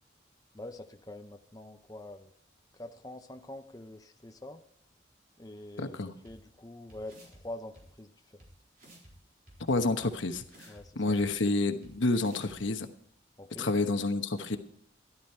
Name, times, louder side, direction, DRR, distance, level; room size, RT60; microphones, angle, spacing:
voice 1, 0.5-2.3 2.7-4.6 5.4-8.4 10.7-11.0 13.4-13.7, left 1 dB, 20° left, 6 dB, 0.7 m, -45 dB
voice 2, 5.8-6.1 9.7-10.4 11.0-12.9 13.6-14.6, left 2 dB, 85° left, 8 dB, 1.1 m, -29 dB
sound 1, 6.3-6.4 6.9-7.4 7.8-7.9 8.4-8.5 8.8-9.1 9.5-10.8 11.2-11.3 11.8-11.9 12.2-12.6, right 1 dB, 45° right, 4.1 m, -54 dB
13.0 x 12.0 x 4.4 m, 0.67 s
head